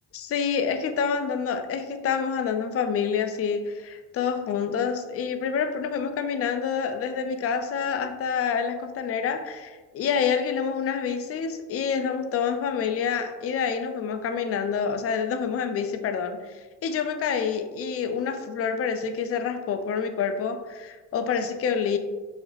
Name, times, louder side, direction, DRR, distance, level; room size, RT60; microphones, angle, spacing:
voice 1, 0.1-22.0, left 6 dB, 50° left, 7 dB, 0.4 m, -27 dB
3.7 x 2.0 x 3.1 m, 1.3 s
cardioid pair, 90°, 30 cm